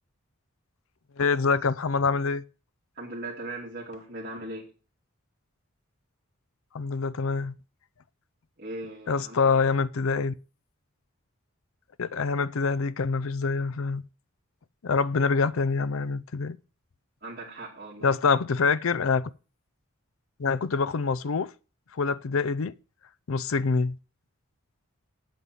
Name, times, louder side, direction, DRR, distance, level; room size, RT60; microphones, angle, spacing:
voice 1, 1.2-2.4 6.7-7.5 9.1-10.3 12.0-14.0 14.8-16.6 18.0-19.3 20.4-21.5 21.9-22.7 23.3-24.0, left 4 dB, 65° left, 0.5 m, -25 dB
voice 2, 3.0-4.7 8.6-9.6 17.2-18.1, right 2 dB, 40° right, 2.7 m, -39 dB
8.4 x 5.5 x 7.6 m
head